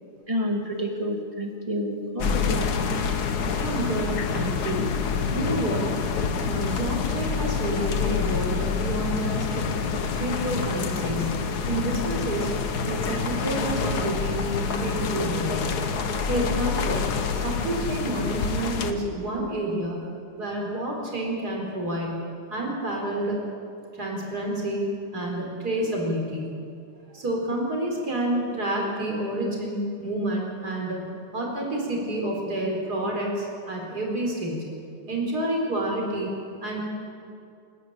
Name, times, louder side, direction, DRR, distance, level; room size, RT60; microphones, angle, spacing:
voice 1, 0.3-2.7, equal, 15° right, 1 dB, 1.6 m, -29 dB
sound 1, 2.2-18.9, left 5 dB, 80° left, 0.8 m, -27 dB
voice 2, 3.6-4.9 5.3-5.9 6.4-9.7 10.2-11.3 11.7-12.5 12.8-15.8 16.3-17.0 17.4-20.0 20.4-22.2 22.5-23.4 24.0-26.5 27.1-31.0 31.3-34.6 35.1-36.3 36.6-36.8, right 1 dB, 30° right, -1 dB, 4.5 m, -29 dB
28.5 x 10.5 x 8.7 m, 2.4 s
omnidirectional pair, 3.5 m